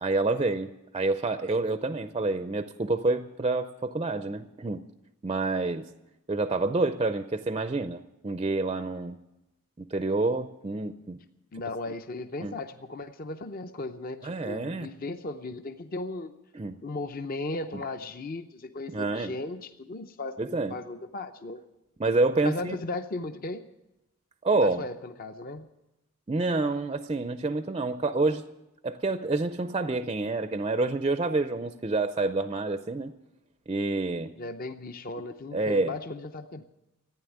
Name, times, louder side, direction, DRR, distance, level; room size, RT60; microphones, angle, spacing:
voice 1, 0.0-4.9 5.2-5.9 6.3-9.2 9.8-11.2 12.4-12.5 14.2-14.9 16.5-16.8 18.9-19.3 20.4-20.8 22.0-22.8 24.4-24.8 26.3-28.4 28.8-33.1 33.7-34.3 35.5-36.0, right 3 dB, 25° right, 11 dB, 0.4 m, -28 dB
voice 2, 11.5-16.4 16.8-20.4 20.7-21.6 22.4-23.7 24.5-25.7 34.4-36.6, left 2 dB, 40° left, 8 dB, 0.6 m, -36 dB
14.5 x 9.5 x 9.3 m, 0.94 s
head